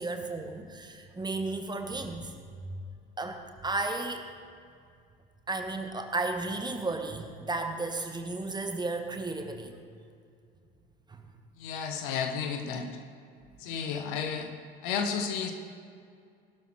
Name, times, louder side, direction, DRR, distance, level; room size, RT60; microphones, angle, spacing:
voice 1, 0.0-2.3 2.6-2.8 3.2-4.2 5.5-9.8 11.1-11.2, right 3 dB, 15° right, 5 dB, 1.2 m, -34 dB
voice 2, 11.6-12.9 13.6-14.5 14.8-15.5, left 6 dB, 60° left, 5 dB, 1.2 m, -32 dB
19.0 x 12.0 x 3.2 m, 2.3 s
figure-of-eight pair, 65°, 29 cm